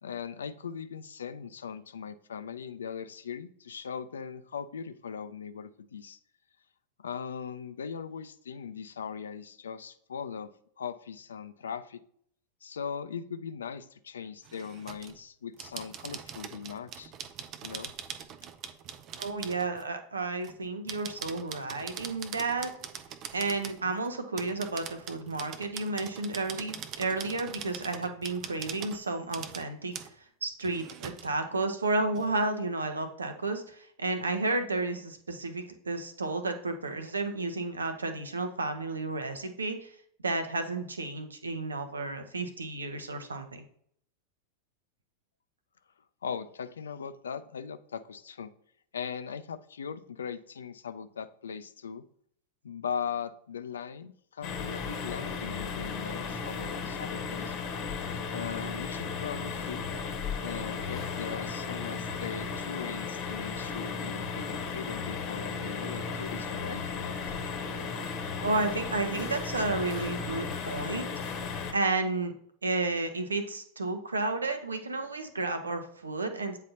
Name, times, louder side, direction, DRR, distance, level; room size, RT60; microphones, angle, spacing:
voice 1, 0.0-6.2 7.0-10.5 10.8-12.0 12.6-17.1 17.6-17.9 46.2-48.5 48.9-52.0 52.6-57.5 58.3-59.8 60.4-67.2, left 7 dB, 70° left, 12 dB, 0.4 m, -39 dB
sound 1, 14.4-15.2 15.6-19.9 20.4-24.1 24.4-29.7 29.9-30.1 30.6-31.3 31.6-31.7 32.1-32.3, right 8 dB, 35° right, 0.5 m, -43 dB
voice 2, 19.2-22.7 23.3-30.0 30.4-39.9 40.2-43.6 68.4-71.1 71.7-72.3 72.6-76.6, right 3 dB, 75° right, 7 dB, 0.8 m, -32 dB
sound 2, 54.4-71.7, left 5 dB, 40° left, 1.0 m, -35 dB
8.6 x 4.0 x 2.7 m, 0.66 s
figure-of-eight pair, 90°, 0 cm